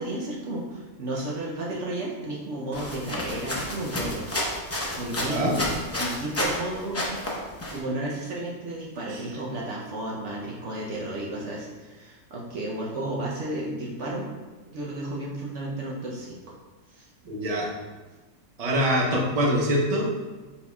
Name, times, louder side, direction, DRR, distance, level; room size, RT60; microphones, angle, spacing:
voice 1, 0.0-4.4 5.0-5.5 6.0-7.2 7.7-14.3 14.7-16.4 16.9-17.1, right 1 dB, 60° right, -3 dB, 1.0 m, -33 dB
sound 1, 2.7-6.6 6.9-7.8, left 1 dB, 20° left, 0.4 m, -30 dB
voice 2, 5.2-5.6 17.3-17.7 18.6-20.1, equal, 30° right, -3 dB, 0.8 m, -24 dB
5.1 x 4.5 x 2.3 m, 1.2 s
omnidirectional pair, 1.5 m